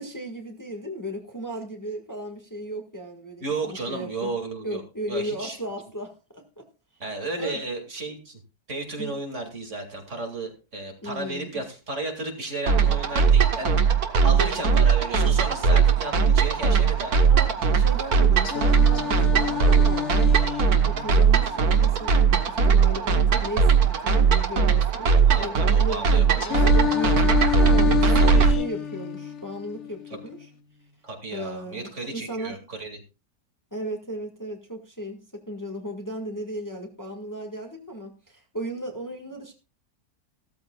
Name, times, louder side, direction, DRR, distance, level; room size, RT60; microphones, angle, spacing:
voice 1, 0.0-4.3 4.6-6.6 7.4-7.6 9.0-9.1 11.0-11.6 17.3-20.2 20.9-27.4 27.9-30.5 31.3-32.6 33.7-39.5, right 1 dB, 10° left, 3 dB, 1.8 m, -36 dB
voice 2, 3.4-4.8 5.1-5.6 7.0-8.4 8.7-13.7 14.2-17.3 25.2-26.8 30.1-30.2 31.0-33.0, right 2 dB, 50° right, 3 dB, 2.8 m, -33 dB
sound 1, 12.7-28.5, right 6 dB, 70° right, 1.8 m, -20 dB
Singing, 18.4-22.4 26.4-30.4, left 10 dB, 50° left, 1.2 m, -28 dB
15.5 x 13.5 x 2.4 m, 0.30 s
omnidirectional pair, 1.6 m